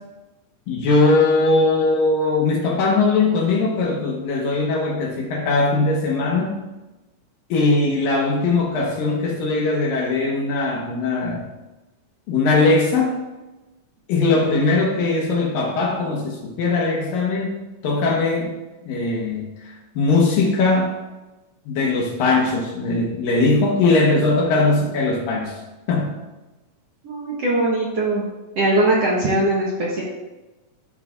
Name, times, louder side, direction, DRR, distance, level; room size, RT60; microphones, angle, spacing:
voice 1, 0.7-6.6 7.5-11.5 12.3-13.2 14.1-17.6 17.8-18.6 18.9-21.0 21.7-25.6 25.9-26.2, left 3 dB, 70° left, 0 dB, 2.9 m, -20 dB
voice 2, 27.0-28.2 28.5-30.0, right 1 dB, 65° right, -5 dB, 1.7 m, -20 dB
14.0 x 5.8 x 2.6 m, 1.1 s
omnidirectional pair, 4.2 m